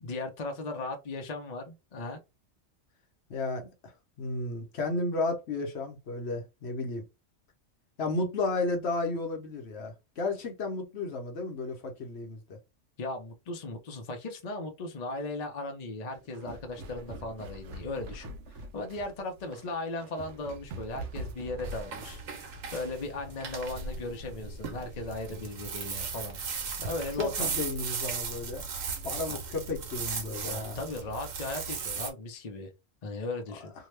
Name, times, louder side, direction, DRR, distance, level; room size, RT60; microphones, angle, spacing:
voice 1, 0.0-2.2 13.0-22.2 22.7-26.4 26.8-27.5 29.3-29.4 30.4-32.7 33.0-33.7, left 2 dB, 45° left, 0.6 m, -37 dB
voice 2, 3.3-3.9 4.2-7.0 8.0-12.6 27.2-28.6 29.0-30.8 33.6-33.7, left 3 dB, 60° left, 1.0 m, -33 dB
sound 1, 16.1-22.2, right 2 dB, 70° right, 0.8 m, -43 dB
sound 2, 21.6-32.1, right 5 dB, 90° right, 1.1 m, -37 dB
2.8 x 2.2 x 3.2 m
omnidirectional pair, 1.3 m